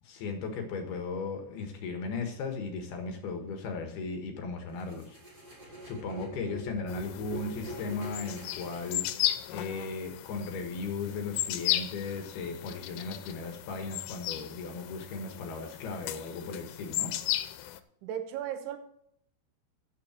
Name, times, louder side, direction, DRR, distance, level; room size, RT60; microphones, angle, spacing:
voice 1, 0.0-5.2 5.9-17.2, left 4 dB, 65° left, 4 dB, 3.1 m, -37 dB
sound 1, 4.8-9.7, right 1 dB, 20° right, 4.6 m, -44 dB
sound 2, 6.9-17.8, left 15 dB, 85° left, 3.3 m, -36 dB
voice 2, 18.0-18.8, right 10 dB, 75° right, 7 dB, 3.5 m, -36 dB
15.0 x 7.5 x 4.4 m, 0.72 s
omnidirectional pair, 5.7 m